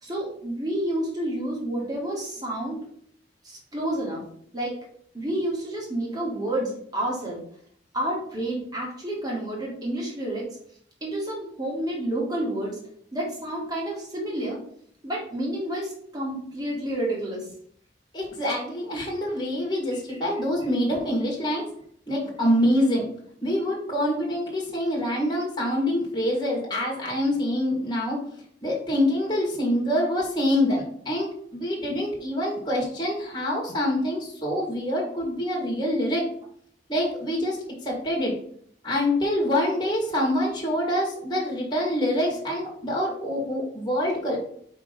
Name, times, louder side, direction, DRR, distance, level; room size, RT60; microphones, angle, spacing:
voice 1, 0.0-2.8 3.4-4.2 4.5-4.7 5.1-7.4 7.9-10.5 11.0-12.8 13.1-14.6 15.0-17.5 20.1-20.2, right 1 dB, 20° right, -3 dB, 2.1 m, -29 dB
voice 2, 18.1-21.7 22.1-23.1 23.4-28.2 28.6-36.2 36.9-38.3 38.8-44.4, left 1 dB, 25° left, -3 dB, 1.7 m, -25 dB
5.3 x 3.8 x 5.1 m, 0.63 s
head